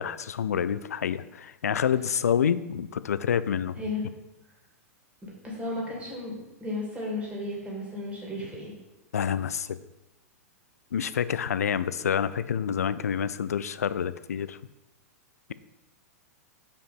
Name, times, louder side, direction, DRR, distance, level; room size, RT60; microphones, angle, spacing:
voice 1, 0.0-3.8 9.1-9.8 10.9-14.6, left 8 dB, 75° left, 15 dB, 0.3 m, -28 dB
voice 2, 5.2-8.7, left 2 dB, 15° right, -3 dB, 2.5 m, -34 dB
5.3 x 5.0 x 5.7 m, 0.98 s
figure-of-eight pair, 100°, 8 cm